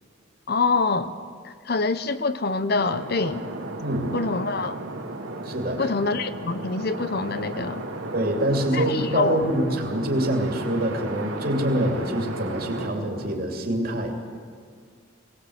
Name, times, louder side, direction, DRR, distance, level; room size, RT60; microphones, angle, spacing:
voice 1, 0.5-1.1 1.4-3.4 4.1-4.8 5.8-7.8 8.7-9.4, left 3 dB, 50° left, 12 dB, 0.8 m, -25 dB
sound 1, 2.8-13.3, right 2 dB, 80° right, 2.7 m, -35 dB
voice 2, 3.8-4.2 5.4-5.9 8.1-14.1, right 1 dB, 50° right, 2 dB, 2.8 m, -25 dB
22.0 x 18.5 x 8.0 m, 2.1 s
head